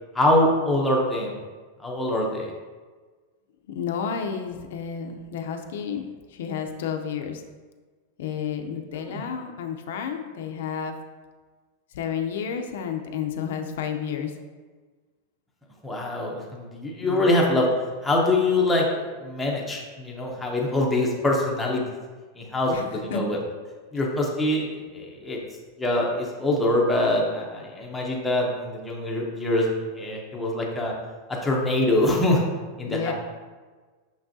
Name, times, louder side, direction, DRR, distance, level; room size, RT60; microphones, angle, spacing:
voice 1, 0.1-1.3 1.8-2.5 9.0-9.2 15.8-17.7 18.0-21.8 22.4-23.4 23.9-25.4 25.8-29.7 30.0-30.9 31.4-32.4 32.8-33.1, left 1 dB, 5° left, -3 dB, 0.7 m, -24 dB
voice 2, 3.7-7.4 8.2-10.9 11.9-14.3 17.0-17.3 22.7-22.9 23.1-23.2 32.9-33.1, left 7 dB, 65° left, 5 dB, 0.6 m, -31 dB
6.0 x 5.9 x 2.7 m, 1.4 s
supercardioid pair, 180°, 0 cm